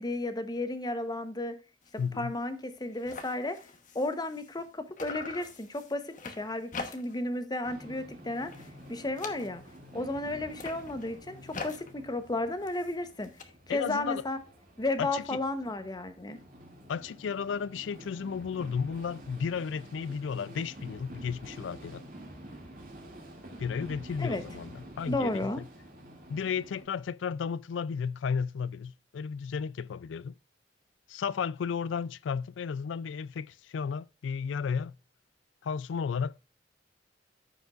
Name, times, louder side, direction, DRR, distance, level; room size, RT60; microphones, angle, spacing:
voice 1, 0.0-1.5 1.9-3.6 3.9-8.5 8.9-9.6 9.9-13.3 13.7-14.4 14.8-16.4 24.2-24.4 25.1-25.6, left 2 dB, 20° left, 0.9 m, -33 dB
sound 1, 1.8-2.1 2.4-2.5 2.7-4.7 5.0-7.3 7.7-8.0 8.3-9.9 10.4-13.4, left 4 dB, 45° left, 1.1 m, -44 dB
voice 2, 2.0-2.3 13.7-14.2 15.0-15.4 16.9-22.1 23.6-25.7 26.3-30.3 31.1-34.9 35.6-36.4, left 6 dB, 85° left, 0.4 m, -33 dB
sound 2, 7.6-26.8, right 1 dB, 50° right, 2.3 m, -49 dB
14.0 x 5.2 x 2.4 m
head